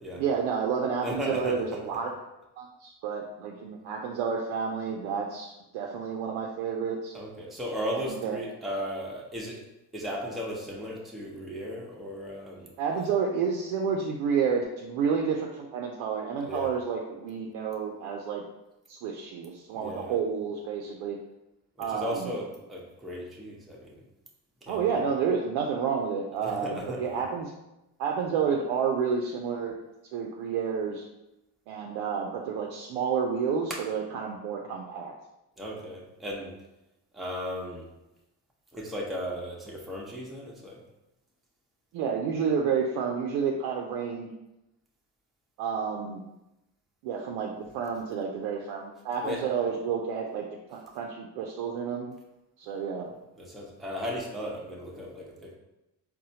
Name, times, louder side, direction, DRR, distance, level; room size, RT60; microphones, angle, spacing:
voice 1, 0.1-2.1 2.6-7.1 7.9-8.4 12.8-18.4 18.9-21.2 21.8-22.3 24.7-27.5 28.0-29.8 30.1-31.0 31.7-35.1 41.9-44.3 45.6-46.2 47.0-50.4 50.7-52.1 52.6-53.1, right 6 dB, 80° right, 1 dB, 0.5 m, -30 dB
voice 2, 1.0-1.8 7.1-9.6 9.9-12.7 16.4-16.7 19.7-20.1 21.8-24.0 24.6-24.8 26.4-27.0 35.6-36.5 37.1-37.9 38.7-40.8 49.2-49.4 53.4-55.5, equal, ahead, -4 dB, 0.8 m, -36 dB
4.1 x 2.1 x 2.7 m, 0.93 s
supercardioid pair, 60°, 45 cm